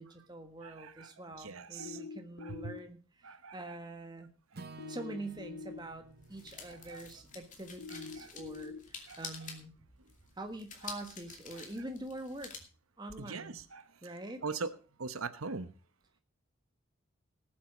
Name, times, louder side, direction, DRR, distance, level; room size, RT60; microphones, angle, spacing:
voice 1, 0.0-3.0 3.5-4.3 4.9-9.7 10.4-12.5 13.0-13.6 14.0-14.4, right 1 dB, 20° right, 5 dB, 1.6 m, -45 dB
voice 2, 0.6-2.0 2.4-2.7 3.2-3.8 6.7-7.0 7.9-8.3 9.1-9.2 10.8-10.9 13.2-13.8 14.4-14.7 15.0-15.7, right 4 dB, 85° right, 12 dB, 1.0 m, -42 dB
sound 1, 1.8-2.8 4.8-5.8 7.8-8.8, left 4 dB, 75° left, 1.2 m, -44 dB
Acoustic guitar / Strum, 4.5-8.8, right 3 dB, 45° right, 0.8 m, -54 dB
sound 2, 5.1-12.6, left 5 dB, 35° left, 2.5 m, -50 dB
18.5 x 7.7 x 5.0 m, 0.37 s
head